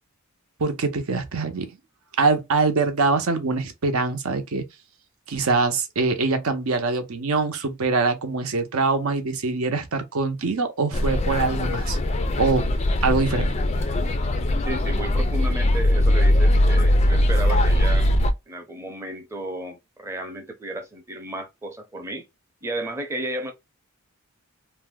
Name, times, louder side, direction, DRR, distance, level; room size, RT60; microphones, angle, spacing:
voice 1, 0.6-1.8 2.2-4.6 5.3-12.0 12.4-12.7 13.0-13.5, right 3 dB, 70° right, 0.7 m, -23 dB
sound 1, 10.9-18.3, left 1 dB, 30° left, 0.3 m, -20 dB
voice 2, 14.6-18.1 18.5-22.3 22.6-23.5, right 1 dB, 10° right, 0.6 m, -33 dB
2.7 x 2.1 x 3.4 m
head